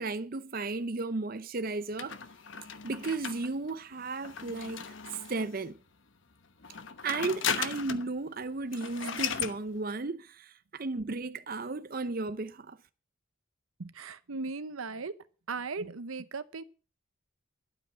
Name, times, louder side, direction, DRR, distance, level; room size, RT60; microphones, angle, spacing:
voice 1, 0.0-2.2 2.8-4.8 5.1-5.8 7.0-12.8, right 3 dB, 45° right, 0.6 m, -34 dB
sound 1, 2.0-5.6 6.6-8.1 8.4-8.5 8.7-9.6, left 7 dB, 60° left, 1.0 m, -36 dB
voice 2, 13.8-15.2 15.5-16.6, right 4 dB, 80° right, 0.8 m, -37 dB
12.0 x 7.7 x 7.3 m
head